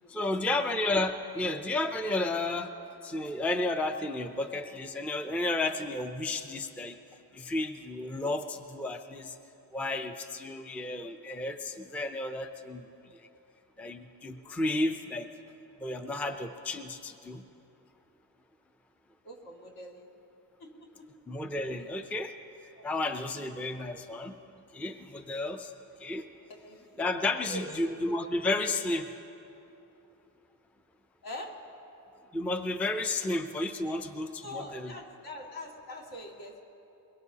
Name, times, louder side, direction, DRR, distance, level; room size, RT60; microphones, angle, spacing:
voice 1, 0.1-2.7 3.0-7.0 7.3-9.4 9.7-12.9 13.1-13.3 13.8-15.3 15.8-17.4 21.3-22.3 22.8-24.4 24.7-25.7 26.0-26.3 27.0-29.1 32.3-34.9, left 2 dB, 5° left, 7 dB, 0.4 m, -32 dB
voice 2, 19.2-20.1 20.6-20.7 22.7-22.8 26.6-26.9 27.5-27.9 31.2-31.5 33.2-33.3 34.4-36.6, left 1 dB, 65° left, -1 dB, 2.3 m, -43 dB
22.5 x 22.0 x 2.8 m, 2.9 s
wide cardioid pair, 165°, 39 cm